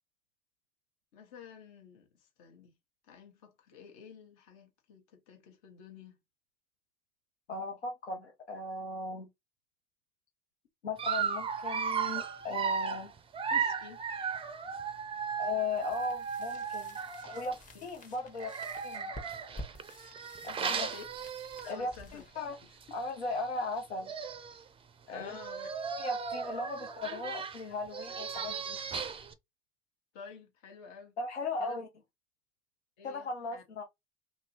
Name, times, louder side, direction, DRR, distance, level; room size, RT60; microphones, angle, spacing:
voice 1, 1.1-2.8 3.1-6.2 13.5-14.0 17.7-17.9 20.6-21.0 21.6-22.2 23.6-23.7 25.1-25.7 30.1-31.1 31.6-31.8 33.0-33.6, left 6 dB, 60° left, 1.1 m, -51 dB
voice 2, 7.5-9.3 10.8-13.1 15.4-17.0 17.2-18.5 18.8-19.1 20.4-20.9 21.7-22.6 22.9-24.1 25.1-25.4 26.0-28.8 31.2-31.9 33.0-33.8, left 3 dB, 85° left, 0.6 m, -37 dB
Dog, 11.0-17.6 18.3-22.0 22.4-22.5 22.8-22.9 23.8-23.9 24.1-24.6 25.2-29.3, right 6 dB, 15° right, 0.4 m, -36 dB
sound 1, 15.7-23.5, left 1 dB, 25° left, 0.9 m, -51 dB
2.7 x 2.6 x 2.8 m
figure-of-eight pair, 70°, 33 cm